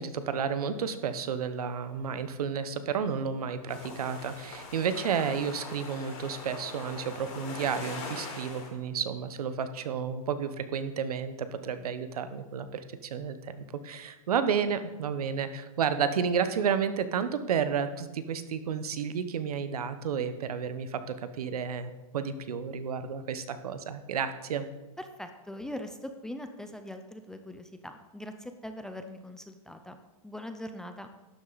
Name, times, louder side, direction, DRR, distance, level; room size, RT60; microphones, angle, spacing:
voice 1, 0.0-24.7, right 7 dB, 80° right, 11 dB, 1.0 m, -31 dB
sound 1, 3.7-8.7, left 4 dB, 45° left, 3.0 m, -42 dB
voice 2, 25.0-30.0 30.2-31.1, left 1 dB, 5° left, 7 dB, 0.4 m, -41 dB
12.0 x 7.9 x 4.0 m, 1.1 s
hypercardioid pair, 150°, 19 cm